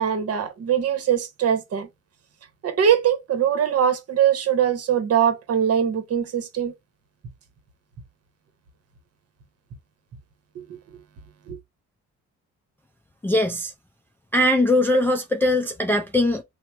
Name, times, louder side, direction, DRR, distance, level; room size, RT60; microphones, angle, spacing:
voice 1, 0.0-1.9 2.6-6.7 10.5-10.6 11.5-11.6, right 8 dB, 50° right, 0.9 m, -22 dB
voice 2, 13.2-13.7 14.3-16.4, left 1 dB, 5° left, 0.4 m, -21 dB
2.9 x 2.1 x 3.3 m
cardioid pair, 90°, 30 cm